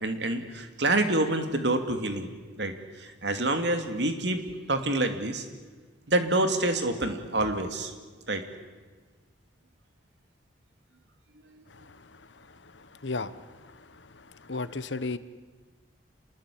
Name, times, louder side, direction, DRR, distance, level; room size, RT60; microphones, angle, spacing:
voice 1, 0.0-2.3 2.6-2.7 3.0-4.4 4.7-5.4 6.1-7.9 8.3-8.4, right 2 dB, 65° right, 7 dB, 2.7 m, -27 dB
voice 2, 14.4-15.2, left 3 dB, 70° left, 14 dB, 1.2 m, -32 dB
27.0 x 20.5 x 8.6 m, 1.4 s
head